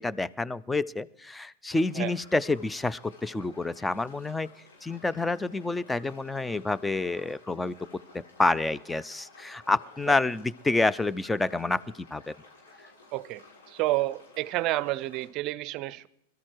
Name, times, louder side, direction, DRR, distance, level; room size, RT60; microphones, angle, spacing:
voice 1, 0.0-4.5 4.8-7.7 8.4-11.8 12.1-12.2, left 2 dB, 10° left, 0.5 m, -28 dB
sound 1, 1.7-15.3, left 3 dB, 85° left, 6.7 m, -54 dB
voice 2, 13.1-16.1, right 17 dB, 45° right, 0.6 m, -30 dB
21.5 x 13.5 x 4.6 m
hypercardioid pair, 115°, 0 cm